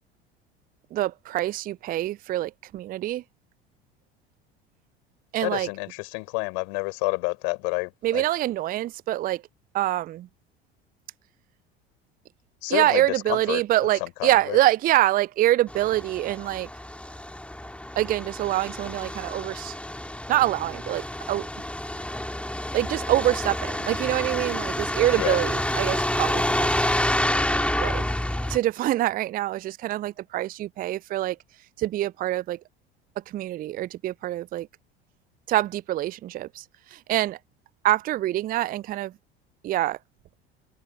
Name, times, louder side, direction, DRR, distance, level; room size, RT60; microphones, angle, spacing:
voice 1, 0.9-3.2 5.3-5.7 8.0-9.4 9.7-10.3 12.7-16.7 18.0-19.7 20.3-21.5 22.7-26.8 27.8-28.1 28.5-31.4 31.8-32.6 33.3-34.7 35.5-36.6 36.9-37.4 37.8-39.1 39.6-40.0, right 15 dB, 30° right, 0.5 m, -25 dB
voice 2, 5.4-8.2 12.6-13.6 14.0-14.6 25.1-25.4, left 40 dB or more, 60° left, 6.3 m, -29 dB
Truck, 15.7-28.6, left 1 dB, 5° left, 3.0 m, -28 dB
open air
figure-of-eight pair, 70°, 31 cm